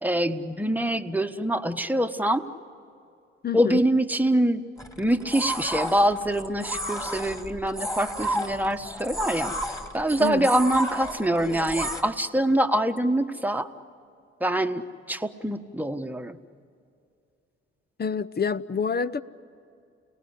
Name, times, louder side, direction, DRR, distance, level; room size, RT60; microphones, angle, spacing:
voice 1, 0.0-2.5 3.5-4.6 5.0-9.5 9.9-13.7 14.4-14.8 15.1-16.4, right 1 dB, 5° right, 7 dB, 1.3 m, -24 dB
voice 2, 3.4-3.8 10.2-10.5 18.0-19.2, left 5 dB, 30° left, 15 dB, 0.9 m, -27 dB
sound 1, 4.8-12.0, right 1 dB, 10° left, 2.7 m, -32 dB
29.5 x 18.5 x 9.9 m, 2.5 s
hypercardioid pair, 45°, 32 cm